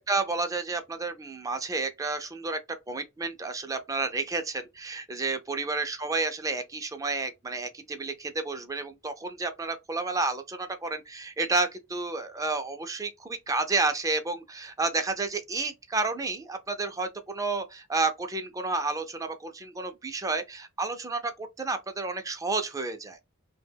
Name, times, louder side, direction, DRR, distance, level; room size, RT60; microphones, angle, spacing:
voice 1, 0.0-2.6 2.9-23.2, right 3 dB, 15° right, 0.4 m, -31 dB
2.8 x 2.2 x 3.2 m
head